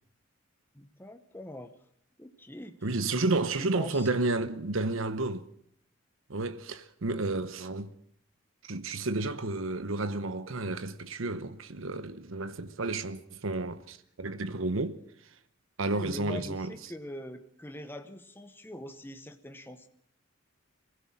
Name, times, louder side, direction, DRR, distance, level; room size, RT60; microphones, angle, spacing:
voice 1, 0.7-1.7 2.2-2.8 3.2-4.1 15.9-19.9, left 1 dB, 10° left, 1.0 m, -43 dB
voice 2, 2.8-5.5 6.3-7.9 8.6-15.0 15.8-16.7, right 2 dB, 85° right, 1.0 m, -31 dB
22.0 x 16.0 x 7.4 m
head